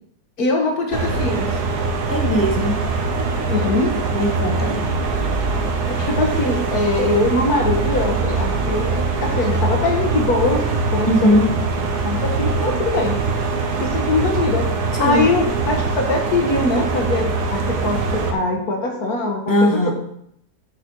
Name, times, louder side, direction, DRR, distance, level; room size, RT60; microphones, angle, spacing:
voice 1, 0.4-1.6 3.4-4.0 5.9-11.5 12.0-13.2 13.8-14.7 15.0-19.9, left 2 dB, 70° left, 2 dB, 2.1 m, -22 dB
sound 1, 0.9-18.3, right 3 dB, 85° right, 1.7 m, -22 dB
voice 2, 2.1-2.8 4.1-4.8 11.1-11.4 15.0-15.2 19.5-19.9, left 1 dB, 15° left, 1 dB, 1.2 m, -18 dB
10.0 x 4.3 x 6.3 m, 0.73 s
omnidirectional pair, 1.6 m